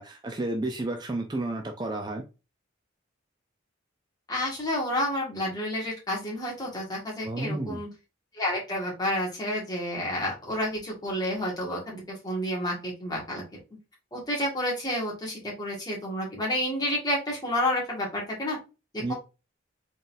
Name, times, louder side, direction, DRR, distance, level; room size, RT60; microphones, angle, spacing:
voice 1, 0.0-2.2 7.2-7.8 19.0-19.1, right 2 dB, 20° right, 3 dB, 0.4 m, -31 dB
voice 2, 4.3-7.9 8.3-13.4 14.1-18.6 19.1-19.2, left 1 dB, 20° left, -3 dB, 1.6 m, -30 dB
3.9 x 3.8 x 2.5 m, 0.29 s
head